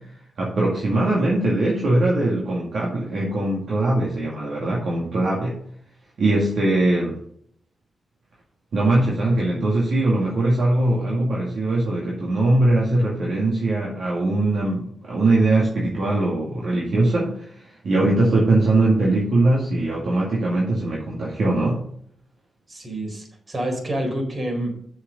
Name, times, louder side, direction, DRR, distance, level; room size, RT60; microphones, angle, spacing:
voice 1, 0.4-5.6 6.2-7.2 8.7-21.8, right 2 dB, 70° right, -4 dB, 2.1 m, -21 dB
voice 2, 22.7-24.7, right 1 dB, 50° right, 1 dB, 4.2 m, -28 dB
6.6 x 6.5 x 6.5 m, 0.65 s
supercardioid pair, 45°, 0 cm